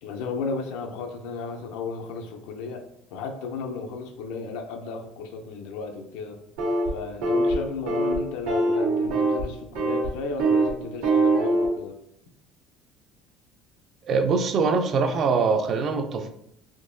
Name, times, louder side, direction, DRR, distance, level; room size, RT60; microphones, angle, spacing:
voice 1, 0.0-2.8 3.1-6.4 6.9-12.0, left 4 dB, 85° left, 5 dB, 0.5 m, -34 dB
sound 1, 6.6-6.9 7.2-7.5 7.9-8.1 8.5-9.4 9.7-10.1 10.4-10.7 11.0-11.6, right 2 dB, 85° right, 1.2 m, -22 dB
voice 2, 14.1-16.3, right 4 dB, 35° right, 6 dB, 0.3 m, -23 dB
3.6 x 2.8 x 2.6 m, 0.76 s
cardioid pair, 160°, 0 cm